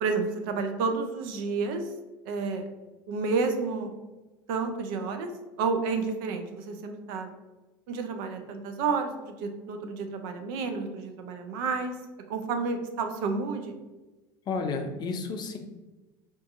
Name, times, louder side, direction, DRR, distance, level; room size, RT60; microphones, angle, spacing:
voice 1, 0.0-1.8 2.3-2.7 3.1-3.9 4.5-5.3 5.6-7.3 7.9-11.9 12.3-13.7, right 4 dB, 70° right, 6 dB, 0.5 m, -30 dB
voice 2, 14.5-15.6, left 4 dB, 40° left, 5 dB, 0.5 m, -31 dB
3.7 x 2.6 x 2.5 m, 1.1 s
hypercardioid pair, 90°, 11 cm